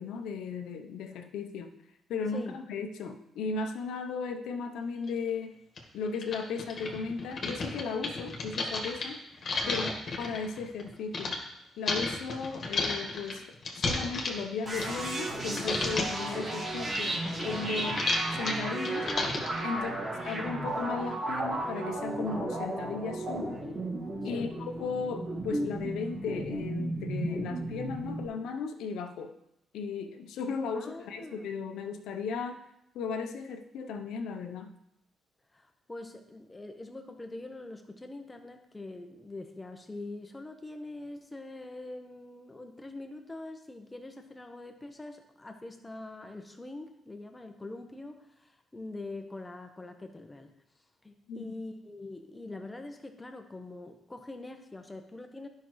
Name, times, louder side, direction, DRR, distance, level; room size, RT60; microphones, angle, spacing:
voice 1, 0.0-1.7 2.1-5.6 5.9-9.2 9.7-9.9 10.2-11.4 11.8-13.4 13.7-18.1 18.4-19.1 19.6-19.9 20.2-23.6 24.2-29.3 29.7-32.6 32.9-34.7 51.3-51.5, left 5 dB, 80° left, 6 dB, 0.7 m, -36 dB
sound 1, 5.1-5.2 5.8-5.9 6.1-11.4 11.9-15.3 15.6-16.2 16.6-19.6, left 3 dB, 50° left, 1.6 m, -33 dB
voice 2, 9.6-9.9 19.7-20.0 24.3-24.5 30.7-31.5 35.5-50.5 51.0-55.5, left 2 dB, 15° left, 6 dB, 1.0 m, -44 dB
sound 2, 14.7-28.3, right 1 dB, 45° right, 2.1 m, -34 dB
11.0 x 5.7 x 3.1 m, 0.83 s
cardioid pair, 90°, 0 cm